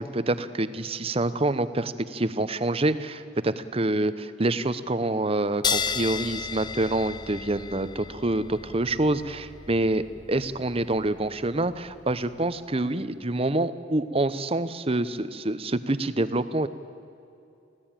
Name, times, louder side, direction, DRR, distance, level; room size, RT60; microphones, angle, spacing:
voice 1, 0.0-10.0 10.3-16.7, right 2 dB, 35° right, 13 dB, 0.9 m, -26 dB
sound 1, 5.6-12.6, left 6 dB, 25° left, 0.6 m, -34 dB
24.5 x 16.5 x 9.0 m, 2.7 s
head